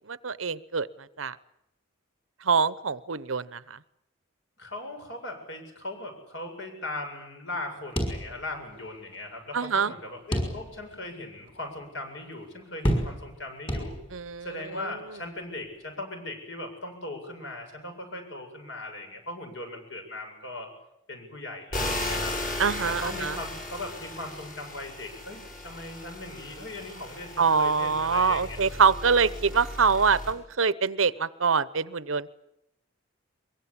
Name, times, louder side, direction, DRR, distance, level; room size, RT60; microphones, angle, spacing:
voice 1, 0.1-0.9 1.2-1.4 2.4-3.8 9.5-9.9 14.1-14.9 22.6-23.4 27.4-32.3, right 5 dB, 80° right, 17 dB, 0.9 m, -25 dB
voice 2, 4.6-14.0 14.4-20.7 21.1-22.3 22.8-28.6, left 2 dB, 65° left, 4 dB, 7.7 m, -39 dB
sound 1, 8.0-8.8 9.1-9.2 10.3-11.0 11.5-11.6 12.8-13.4 13.7-14.3, equal, 25° left, 5.7 m, -29 dB
sound 2, 21.7-30.3, left 1 dB, 45° left, 7.2 m, -36 dB
23.0 x 23.0 x 8.5 m, 0.82 s
head